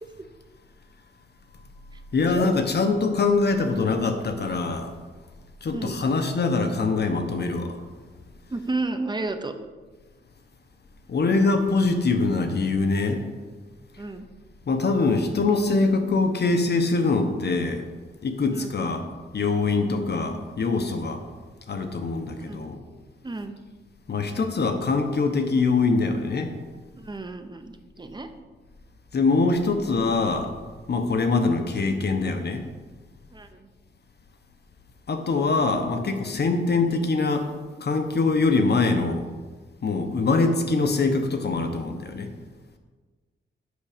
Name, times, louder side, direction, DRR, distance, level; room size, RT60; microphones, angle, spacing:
voice 1, 2.1-4.9 5.6-7.8 11.1-13.3 13.9-14.0 14.7-17.9 18.2-19.0 19.3-21.2 21.7-22.8 24.1-26.5 29.1-30.5 30.9-32.6 35.1-37.5 37.8-39.3 39.8-42.3, left 3 dB, 55° left, 6 dB, 1.0 m, -23 dB
voice 2, 5.7-6.1 8.5-9.5 14.0-14.3 18.5-18.9 22.5-22.7 23.2-23.6 27.0-28.3 33.3-33.7, right 2 dB, 20° right, 8 dB, 0.7 m, -33 dB
8.3 x 6.0 x 5.1 m, 1.4 s
wide cardioid pair, 100°, 20 cm